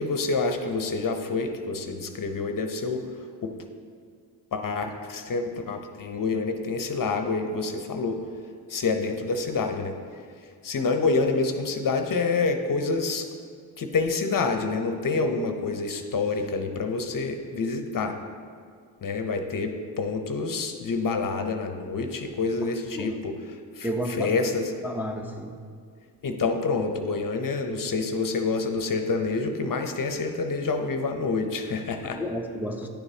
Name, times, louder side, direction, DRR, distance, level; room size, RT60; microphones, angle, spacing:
voice 1, 0.0-3.1 3.4-3.5 4.5-8.2 8.7-9.9 10.6-13.3 13.8-18.2 19.0-23.3 23.8-24.7 26.2-32.2, left 4 dB, 45° left, 5 dB, 0.8 m, -27 dB
voice 2, 23.8-24.5 24.8-25.5 32.1-32.9, equal, 5° right, 1 dB, 0.7 m, -31 dB
10.0 x 6.7 x 2.8 m, 2.1 s
supercardioid pair, 50°, 46 cm